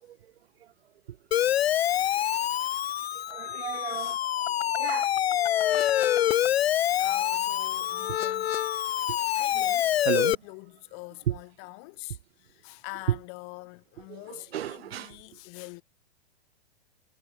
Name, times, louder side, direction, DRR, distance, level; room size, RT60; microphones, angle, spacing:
Siren, 1.3-10.3, left 11 dB, 70° left, 1.8 m, -26 dB
voice 1, 3.3-4.2 4.8-5.1 9.1-9.2 10.1-10.4 11.3-11.4 14.5-15.1, right 11 dB, 70° right, 1.9 m, -32 dB
voice 2, 3.8-4.2 7.0-8.6 9.3-15.8, left 40 dB or more, 45° left, 7.9 m, -45 dB
hypercardioid pair, 120°, 32 cm